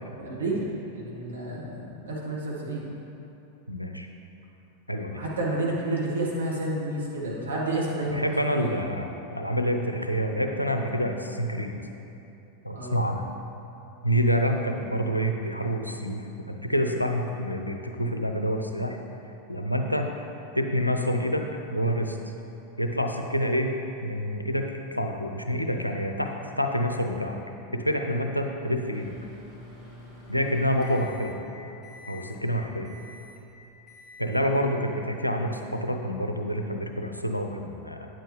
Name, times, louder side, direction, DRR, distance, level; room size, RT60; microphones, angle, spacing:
voice 1, 0.2-2.8 5.1-8.8 12.7-13.0, right 2 dB, 70° right, -5 dB, 1.7 m, -30 dB
voice 2, 3.7-4.1 4.9-5.2 8.0-11.7 12.6-13.2 14.0-19.0 19.5-20.1 20.5-22.2 22.8-23.7 24.0-27.4 27.7-29.1 30.3-31.3 32.1-32.9 34.2-38.1, equal, 90° left, 4 dB, 0.5 m, -27 dB
Microwave oven, 28.9-31.5 31.8-32.4 32.8-33.4 33.9-34.5, left 2 dB, 15° left, 1.9 m, -47 dB
8.9 x 7.6 x 3.2 m, 2.9 s
figure-of-eight pair, 90°, 0 cm